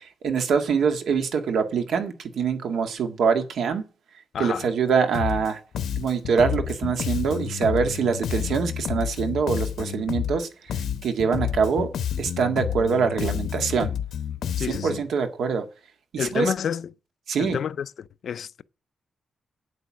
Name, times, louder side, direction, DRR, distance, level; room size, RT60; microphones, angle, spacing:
voice 1, 0.0-3.9 4.4-5.6 6.0-11.9 12.2-13.9 14.6-15.7 16.1-16.5 17.3-17.6, right 6 dB, 70° right, 1.8 m, -24 dB
voice 2, 4.3-4.7 14.6-15.0 16.2-16.9 17.4-18.6, left 8 dB, 55° left, 0.4 m, -29 dB
Bass guitar, 5.1-5.5 5.7-10.4 10.7-15.0, left 9 dB, 85° left, 0.9 m, -30 dB
9.1 x 8.0 x 6.2 m
wide cardioid pair, 180°, 0 cm